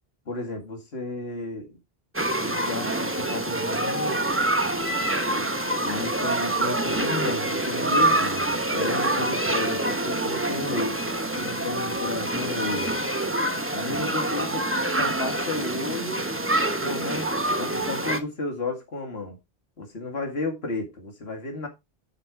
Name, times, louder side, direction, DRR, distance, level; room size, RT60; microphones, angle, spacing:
voice 1, 0.3-1.8 2.4-4.2 5.8-11.0 11.4-12.9 13.7-14.7 15.0-16.3 16.8-19.4 19.8-21.7, left 2 dB, 80° left, 2.4 m, -33 dB
sound 1, 2.1-18.2, right 1 dB, 15° right, 1.2 m, -26 dB
10.5 x 5.2 x 4.8 m
omnidirectional pair, 1.0 m